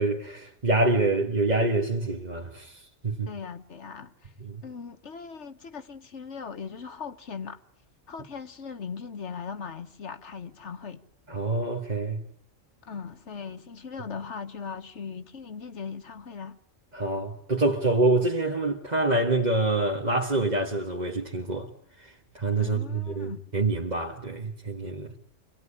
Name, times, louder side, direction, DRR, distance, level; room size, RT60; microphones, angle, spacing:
voice 1, 0.0-3.3 4.4-4.6 11.3-12.3 16.9-21.7 22.0-25.2, right 2 dB, 35° right, 1.8 m, -26 dB
voice 2, 3.3-4.3 4.6-7.6 8.1-11.0 12.8-16.6 22.6-23.4, left 6 dB, 65° left, 1.6 m, -39 dB
25.5 x 19.0 x 10.0 m
omnidirectional pair, 1.3 m